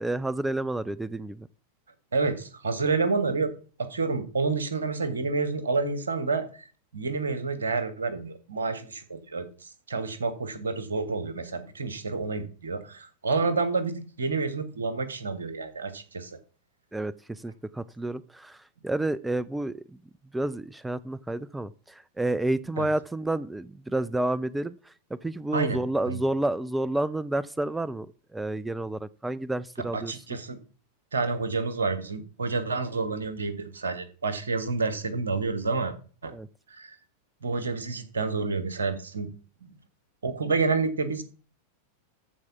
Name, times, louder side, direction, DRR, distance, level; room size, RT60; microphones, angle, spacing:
voice 1, 0.0-1.5 16.9-20.0 20.3-24.9 25.2-28.1 28.3-30.1 36.3-36.5, right 2 dB, 5° right, 19 dB, 0.4 m, -30 dB
voice 2, 2.1-3.5 3.8-6.5 6.9-9.5 9.9-16.3 22.8-22.9 25.5-25.8 26.1-26.2 29.9-30.6 31.1-35.9 36.2-36.3 36.7-36.9 37.4-39.3 39.6-39.7 40.2-41.2, right 4 dB, 70° right, 12 dB, 1.6 m, -29 dB
13.5 x 4.8 x 7.1 m, 0.39 s
figure-of-eight pair, 90°, 0 cm